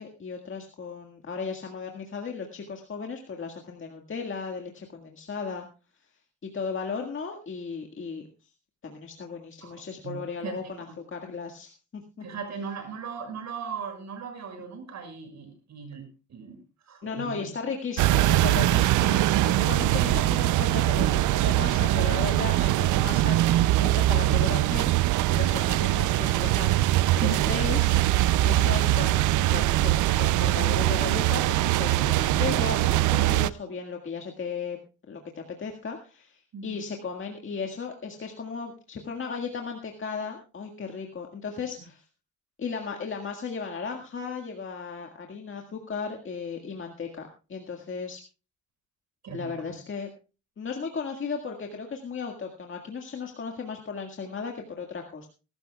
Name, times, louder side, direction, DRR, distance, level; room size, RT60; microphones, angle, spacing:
voice 1, 0.0-5.7 6.4-8.3 8.8-12.2 17.0-24.9 25.3-26.8 27.2-28.0 28.4-34.8 35.1-42.0 42.6-48.2 49.3-50.1 50.6-55.3, left 5 dB, 40° left, 2 dB, 1.9 m, -35 dB
voice 2, 9.6-10.9 12.2-16.0 16.3-16.6 16.9-17.5 27.1-27.4 36.5-36.8 49.2-49.7, right 6 dB, 65° right, 4 dB, 6.5 m, -38 dB
sound 1, 18.0-33.5, right 15 dB, 80° right, 0.6 m, -22 dB
21.0 x 13.0 x 2.3 m, 0.33 s
cardioid pair, 90°, 30 cm